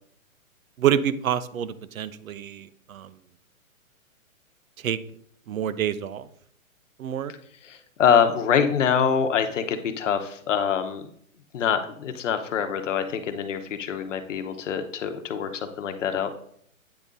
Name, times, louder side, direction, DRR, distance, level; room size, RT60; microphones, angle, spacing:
voice 1, 0.8-3.1 4.8-5.0 5.5-6.3 7.0-7.3, right 10 dB, 75° right, 15 dB, 0.7 m, -27 dB
voice 2, 7.6-11.0 11.5-16.3, left 7 dB, 60° left, 8 dB, 1.0 m, -25 dB
8.9 x 3.8 x 4.0 m, 0.64 s
hypercardioid pair, 155°, 42 cm